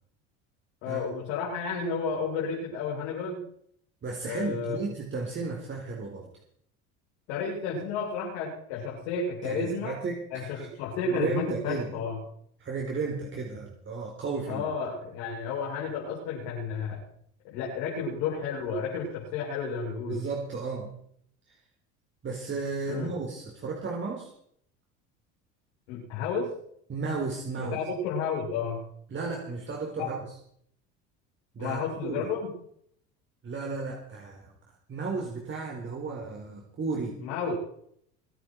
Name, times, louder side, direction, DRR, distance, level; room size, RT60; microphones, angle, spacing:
voice 1, 0.8-3.4 4.2-4.8 7.3-10.0 10.3-12.2 14.5-17.0 17.4-20.2 22.9-23.1 25.9-26.5 27.6-28.8 30.0-30.2 31.6-32.5 37.2-37.6, left 5 dB, 80° left, -4 dB, 7.5 m, -32 dB
voice 2, 4.0-6.3 9.4-10.7 11.0-12.0 12.6-14.7 20.1-20.9 21.5-21.6 22.2-24.3 26.9-27.8 29.1-30.2 31.5-32.3 33.4-34.5 34.9-37.2, right 4 dB, 35° right, 0 dB, 4.2 m, -34 dB
24.5 x 11.0 x 4.7 m, 0.67 s
supercardioid pair, 95°, 33 cm